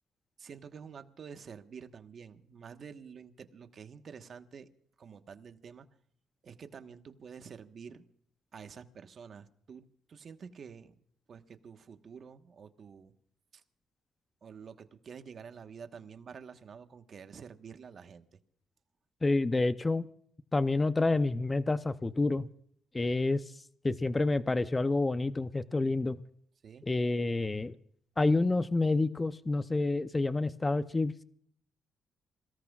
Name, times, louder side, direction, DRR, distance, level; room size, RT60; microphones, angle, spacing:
voice 1, 0.4-4.7 5.0-5.9 6.4-8.0 8.5-10.9 11.3-13.1 13.5-13.6 14.4-18.4 26.6-26.9, right 6 dB, 50° right, 8 dB, 1.3 m, -49 dB
voice 2, 19.2-20.1 20.5-22.5 22.9-23.4 23.8-26.2 26.8-27.8 28.2-31.2, left 2 dB, 20° left, 13 dB, 0.7 m, -28 dB
27.5 x 18.0 x 2.4 m, 0.62 s
cardioid pair, 90°, 0 cm